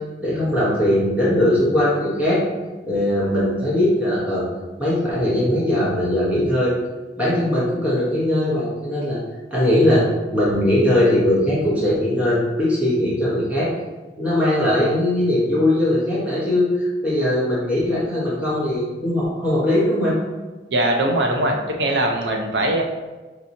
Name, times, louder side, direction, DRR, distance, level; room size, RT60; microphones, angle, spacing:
voice 1, 0.2-2.4 2.9-4.5 4.8-6.7 7.2-9.2 9.5-10.1 10.3-13.7 14.2-20.2, left 1 dB, 10° right, -9 dB, 1.0 m, -20 dB
voice 2, 20.7-22.8, right 1 dB, 65° right, 1 dB, 0.6 m, -21 dB
4.5 x 2.9 x 2.6 m, 1.2 s
head